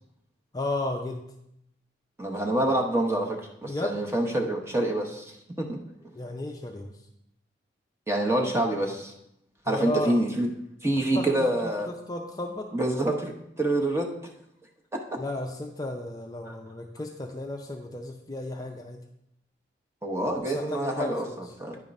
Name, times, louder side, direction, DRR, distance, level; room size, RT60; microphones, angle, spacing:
voice 1, 0.5-1.2 3.6-4.0 6.2-7.0 9.7-10.2 11.2-11.3 11.6-12.7 15.2-19.0 20.5-21.4, left 2 dB, 20° left, 1 dB, 0.4 m, -34 dB
voice 2, 2.2-5.8 8.1-9.1 9.7-10.5 10.8-11.9 12.7-13.3 13.6-14.1 16.5-16.6 20.0-21.2 21.6-21.8, right 1 dB, 15° right, 1 dB, 0.9 m, -26 dB
9.9 x 3.6 x 5.2 m, 0.79 s
head